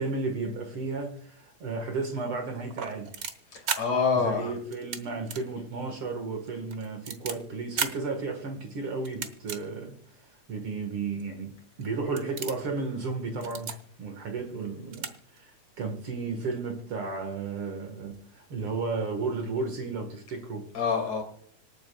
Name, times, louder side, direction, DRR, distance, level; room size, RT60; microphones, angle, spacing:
voice 1, 0.0-3.2 4.2-10.0 10.5-20.7, right 4 dB, 55° right, 2.2 m, -33 dB
sound 1, 2.7-3.8 4.7-5.0 5.3-5.4 5.8-5.9 6.5-7.3 7.8-7.9 9.0-9.6 10.2-10.3 11.2-11.3 11.7-11.9 12.2-12.7 13.3-13.8 14.6-14.7 14.9-15.1 15.4-15.5, right 6 dB, 85° right, 0.8 m, -33 dB
voice 2, 3.5-4.5 20.7-21.2, left 6 dB, 60° left, 3.9 m, -26 dB
26.0 x 9.0 x 2.3 m
omnidirectional pair, 3.3 m